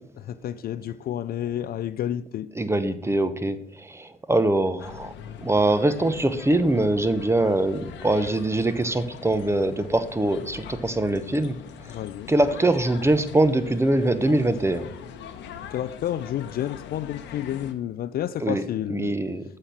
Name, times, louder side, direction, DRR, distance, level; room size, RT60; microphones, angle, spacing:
voice 1, 0.2-2.5 11.9-12.3 15.7-19.2, left 11 dB, 50° left, 0.4 m, -30 dB
voice 2, 2.6-5.1 5.4-11.6 12.3-14.9 18.4-18.6 18.9-19.4, right 2 dB, 15° right, 0.8 m, -23 dB
sound 1, 4.8-17.7, left 7 dB, 70° left, 0.8 m, -42 dB
7.6 x 4.3 x 6.1 m
supercardioid pair, 65°, 19 cm